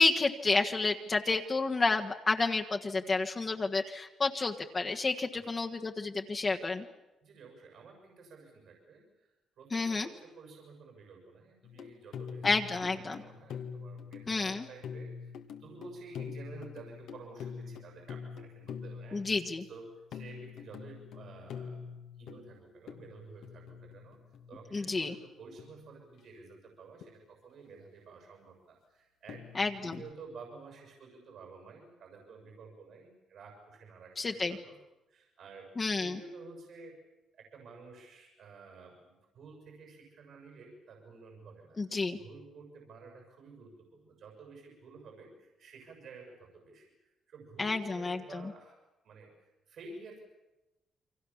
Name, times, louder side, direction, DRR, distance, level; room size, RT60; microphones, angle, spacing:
voice 1, 0.0-6.8 9.7-10.1 12.4-13.2 14.3-14.6 19.1-19.6 24.7-25.1 29.5-29.9 34.2-34.6 35.8-36.2 41.8-42.2 47.6-48.4, left 3 dB, 30° left, 3 dB, 1.5 m, -30 dB
voice 2, 7.2-15.3 15.6-21.8 22.2-24.2 24.5-34.8 35.1-37.0 37.3-41.8 42.1-48.8 49.0-50.2, right 4 dB, 70° right, 2 dB, 7.1 m, -51 dB
sound 1, 11.6-24.9 25.6-26.2 27.0-27.1 29.3-30.1, left 6 dB, 75° left, 1.8 m, -45 dB
29.5 x 23.5 x 7.3 m, 1.0 s
cardioid pair, 90°, 0 cm